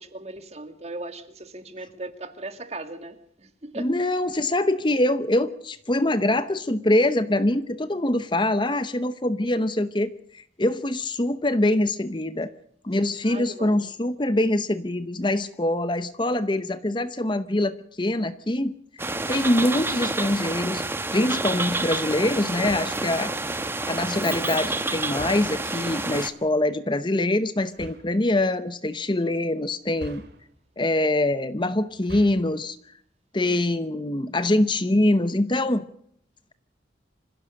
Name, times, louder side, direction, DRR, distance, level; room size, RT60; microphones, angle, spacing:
voice 1, 0.0-3.9 13.2-13.8, right 2 dB, 35° right, 2.1 m, -38 dB
voice 2, 3.7-12.5 12.8-19.0 19.3-20.8 21.1-23.3 23.9-30.2 30.8-32.8 33.3-35.8, left 1 dB, 25° left, 0.8 m, -24 dB
sound 1, 19.0-26.3, right 2 dB, 10° right, 1.1 m, -29 dB
sound 2, 22.6-23.2 25.1-25.7 27.7-28.2 29.9-30.7 31.9-32.6, right 1 dB, 60° right, 2.2 m, -43 dB
26.0 x 16.0 x 6.4 m
head